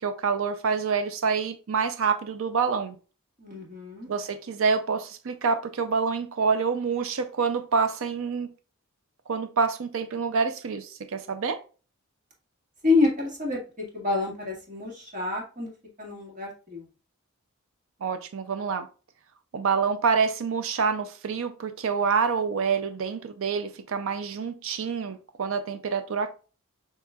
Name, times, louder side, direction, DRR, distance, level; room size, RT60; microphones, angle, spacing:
voice 1, 0.0-2.9 4.1-8.5 9.3-11.6 18.0-18.9 19.5-26.4, right 5 dB, 65° right, 0.5 m, -27 dB
voice 2, 3.4-4.1 12.8-15.7 16.0-16.9, left 3 dB, 35° right, 1.7 m, -28 dB
7.1 x 3.0 x 2.3 m
head